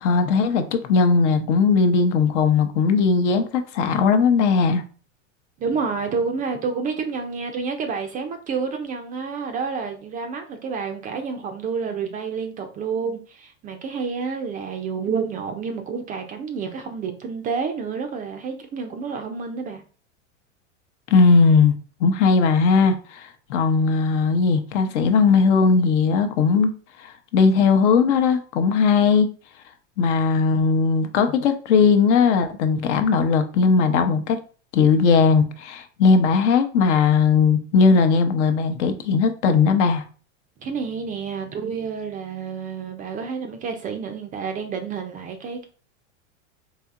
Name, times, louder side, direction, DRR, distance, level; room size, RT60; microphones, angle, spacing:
voice 1, 0.0-4.8 21.1-21.7 22.0-26.7 27.0-29.3 30.0-34.4 34.7-40.0, left 5 dB, 70° left, 0.7 m, -18 dB
voice 2, 5.6-19.8 40.6-45.6, right 5 dB, 25° right, 0.3 m, -29 dB
4.1 x 2.8 x 2.4 m
supercardioid pair, 115°, 37 cm